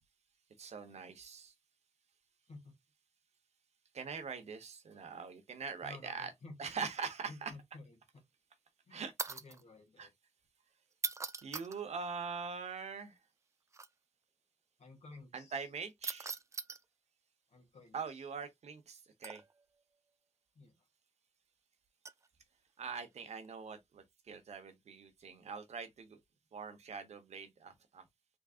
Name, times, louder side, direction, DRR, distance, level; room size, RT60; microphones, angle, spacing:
voice 1, 0.6-1.5 3.9-6.3 6.6-7.5 8.9-9.3 10.0-10.1 11.4-13.2 15.3-16.3 17.9-19.4 22.8-26.2 26.5-28.1, right 5 dB, 75° right, 1.0 m, -43 dB
voice 2, 5.8-6.6 7.3-8.2 8.9-10.1 14.8-15.7 17.5-18.2 20.5-20.8, left 3 dB, 75° left, 1.9 m, -54 dB
sound 1, 9.2-9.6 10.9-11.8 13.7-13.9 16.0-16.8 19.2-19.6 22.0-22.3 23.2-23.5, right 4 dB, 25° right, 0.3 m, -41 dB
3.9 x 3.6 x 2.4 m
wide cardioid pair, 135°, 11 cm